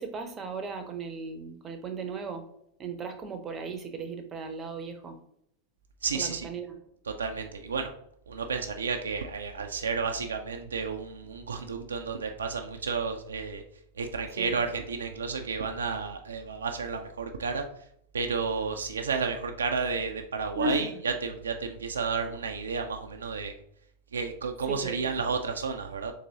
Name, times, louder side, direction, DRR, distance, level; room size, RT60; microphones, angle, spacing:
voice 1, 0.0-2.4 2.8-5.2 6.1-6.7 14.4-14.6 20.6-21.0 24.7-25.0, right 3 dB, 25° right, 7 dB, 0.6 m, -36 dB
voice 2, 6.0-6.5 7.1-7.9 8.3-13.6 13.9-17.6 18.1-23.5 24.1-26.1, right 5 dB, 70° right, 4 dB, 0.3 m, -31 dB
3.8 x 2.9 x 2.8 m, 0.72 s
figure-of-eight pair, 90°, 0 cm